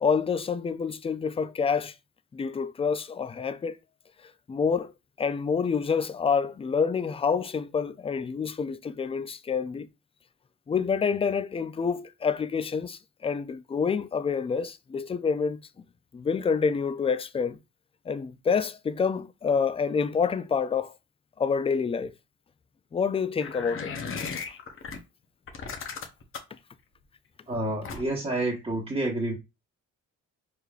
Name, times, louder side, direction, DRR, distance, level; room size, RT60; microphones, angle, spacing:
voice 1, 0.0-1.9 2.3-3.8 4.5-4.9 5.2-9.9 10.7-15.6 16.1-17.6 18.1-21.0 21.4-22.1 22.9-23.9, left 6 dB, 20° left, 0.3 m, -27 dB
sound 1, 23.4-25.0 25.5-26.6 27.8-28.3, left 5 dB, 45° left, 0.9 m, -36 dB
voice 2, 27.5-29.4, right 2 dB, 20° right, 1.3 m, -29 dB
4.6 x 3.4 x 2.4 m
cardioid pair, 90°, 30 cm